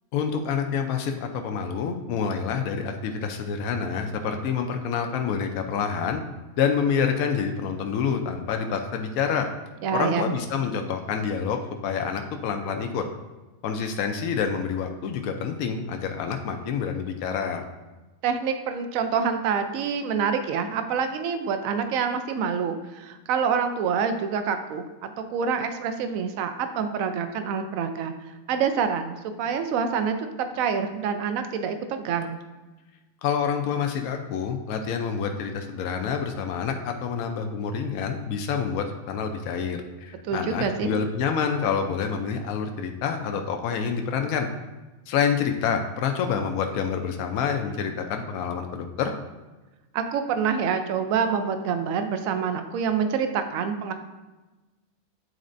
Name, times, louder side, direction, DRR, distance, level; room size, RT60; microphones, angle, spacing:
voice 1, 0.1-6.2 6.6-9.5 9.9-13.0 13.6-17.6 33.2-44.5 45.1-49.1, left 6 dB, 80° left, 5 dB, 1.0 m, -27 dB
voice 2, 9.8-10.3 18.2-28.1 28.5-30.3 30.5-32.4 40.3-40.9 49.9-53.9, right 6 dB, 75° right, 8 dB, 1.0 m, -26 dB
9.2 x 4.1 x 2.6 m, 1.2 s
omnidirectional pair, 1.5 m